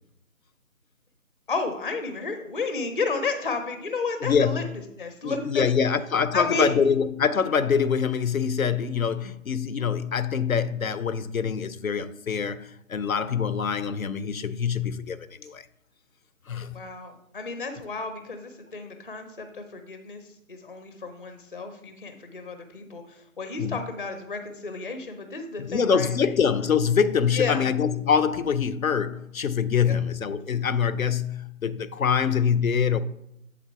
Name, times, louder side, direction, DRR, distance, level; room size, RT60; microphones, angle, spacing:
voice 1, 1.5-4.6 5.0-5.6 6.3-6.7 16.6-26.1 27.3-27.6 29.8-30.0, left 4 dB, 40° left, 0.6 m, -32 dB
voice 2, 4.2-4.7 5.2-15.6 16.5-16.8 23.6-23.8 25.6-33.0, left 7 dB, 80° left, 0.6 m, -25 dB
7.6 x 3.7 x 4.6 m
figure-of-eight pair, 160°, 41 cm